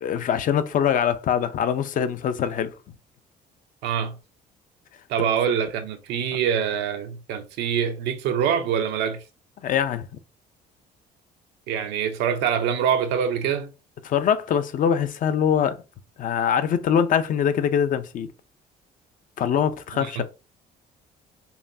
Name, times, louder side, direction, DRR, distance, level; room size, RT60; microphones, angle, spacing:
voice 1, 0.0-2.7 9.6-10.1 14.0-15.8 16.2-18.3 19.4-20.2, left 8 dB, 50° left, 0.6 m, -23 dB
voice 2, 3.8-4.2 5.1-9.2 11.7-13.7 20.0-20.2, right 8 dB, 85° right, 0.7 m, -25 dB
5.5 x 2.2 x 2.7 m
cardioid pair, 110°, 17 cm